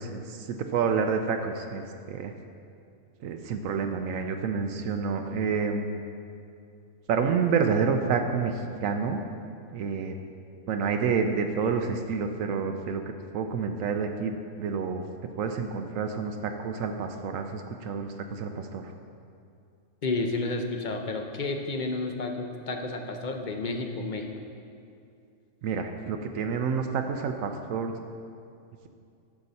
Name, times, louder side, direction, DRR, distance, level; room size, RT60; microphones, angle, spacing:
voice 1, 0.0-2.3 3.2-6.0 7.1-9.2 9.7-10.1 10.7-13.0 13.3-15.0 15.4-18.9 25.6-27.9, right 5 dB, 75° right, 6 dB, 1.0 m, -29 dB
voice 2, 20.0-24.3, left 3 dB, 45° left, 4 dB, 0.8 m, -31 dB
11.5 x 7.0 x 4.1 m, 2.4 s
omnidirectional pair, 1.4 m